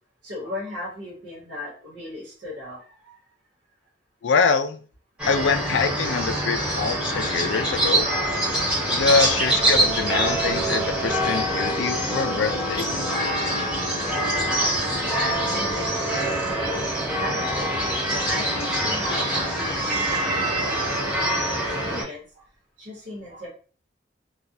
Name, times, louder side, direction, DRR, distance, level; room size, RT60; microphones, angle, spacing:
voice 1, 0.2-3.2 12.8-12.9 13.4-13.6 14.2-22.4 22.8-23.5, left 1 dB, 70° right, -6 dB, 0.9 m, -36 dB
voice 2, 4.2-4.8 5.3-8.1 8.9-13.1, left 5 dB, 75° left, 7 dB, 0.3 m, -24 dB
sound 1, 5.2-22.0, right 1 dB, 5° right, 0.8 m, -24 dB
2.3 x 2.1 x 2.5 m, 0.39 s
head